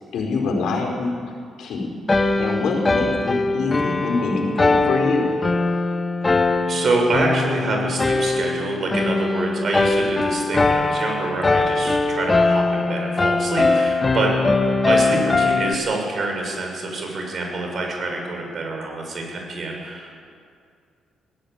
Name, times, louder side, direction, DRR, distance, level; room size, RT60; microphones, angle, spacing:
voice 1, 0.1-1.2 1.6-1.9 2.4-5.3, left 4 dB, 75° left, 1 dB, 4.3 m, -24 dB
sound 1, 2.1-15.7, left 3 dB, 25° left, 1.4 m, -21 dB
voice 2, 6.6-14.3 14.8-20.3, right 3 dB, 50° right, 1 dB, 6.6 m, -26 dB
20.0 x 17.5 x 8.8 m, 2.2 s
cardioid pair, 90°, 0 cm